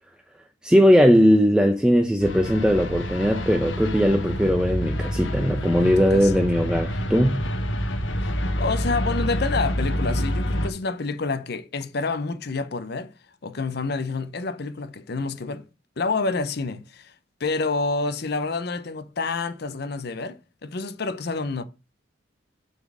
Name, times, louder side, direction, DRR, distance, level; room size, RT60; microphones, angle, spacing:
voice 1, 0.6-7.4, equal, 5° right, 0.5 m, -19 dB
sound 1, 2.2-10.7, equal, 70° left, 1.1 m, -27 dB
voice 2, 5.8-6.4 8.2-13.1 13.4-15.6 16.0-17.1 17.4-21.6, left 3 dB, 55° left, 0.7 m, -28 dB
6.8 x 4.3 x 6.1 m
head